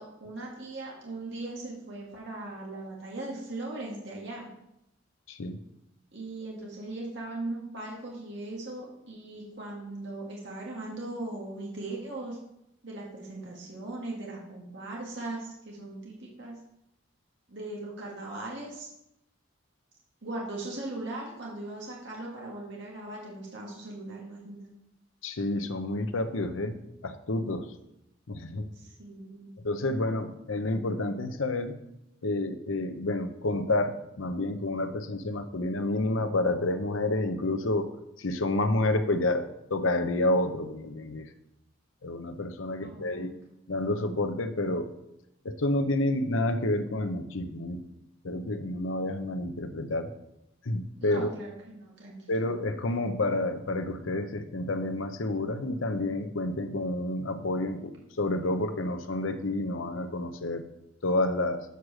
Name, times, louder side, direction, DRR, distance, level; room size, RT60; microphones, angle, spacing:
voice 1, 0.0-4.5 6.1-12.4 12.8-16.6 17.5-18.9 20.2-24.7 28.7-29.5 42.8-43.3 51.0-52.2, right 2 dB, 60° right, -3 dB, 1.8 m, -39 dB
voice 2, 25.2-26.8 27.0-27.6 28.3-28.7 29.6-31.8 32.2-37.9 38.2-41.3 42.0-43.3 43.7-44.9 45.4-47.8 48.2-50.1 50.6-51.3 52.3-60.6 61.0-61.6, left 2 dB, 90° left, 8 dB, 0.8 m, -29 dB
8.1 x 4.8 x 6.2 m, 0.83 s
head